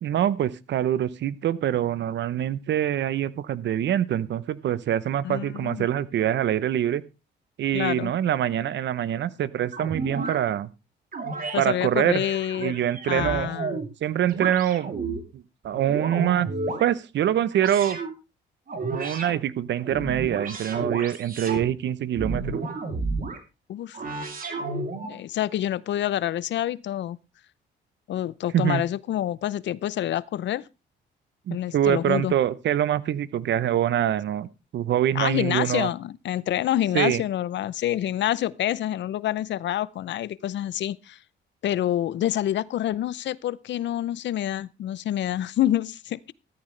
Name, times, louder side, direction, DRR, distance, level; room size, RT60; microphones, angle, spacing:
voice 1, 0.0-7.0 7.6-10.7 11.6-12.2 12.6-13.5 14.0-15.0 15.3-16.5 16.8-18.0 18.9-22.6 28.5-28.8 31.5-35.9 36.9-37.2, right 10 dB, 65° right, 0.8 m, -25 dB
voice 2, 5.2-5.9 7.7-8.1 11.5-12.8 13.1-13.8 23.7-24.0 25.0-27.2 28.1-30.6 31.5-32.3 35.1-41.2 41.6-46.2, left 12 dB, 65° left, 0.6 m, -27 dB
sound 1, 9.7-10.4 11.1-11.6 12.1-13.9 14.3-15.2 15.7-16.9 17.5-18.1 18.7-19.3 19.8-21.7 22.1-23.4 23.9-25.2, right 3 dB, 45° right, 3.1 m, -32 dB
14.0 x 13.0 x 3.3 m
cardioid pair, 90°, 20 cm